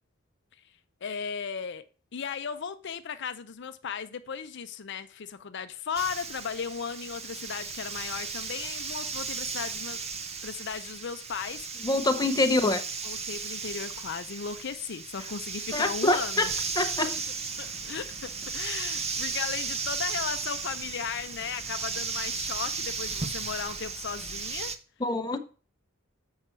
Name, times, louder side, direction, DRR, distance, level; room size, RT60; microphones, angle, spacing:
voice 1, 1.0-1.8 2.1-10.0 10.4-11.9 13.0-16.5 17.0-17.1 17.6-24.7, left 6 dB, 60° left, 0.5 m, -36 dB
sound 1, 5.9-24.7, right 5 dB, 30° right, 0.7 m, -35 dB
voice 2, 11.8-12.8 15.7-16.5 16.8-17.2 25.0-25.4, left 2 dB, 20° left, 0.7 m, -25 dB
7.5 x 5.6 x 4.5 m
head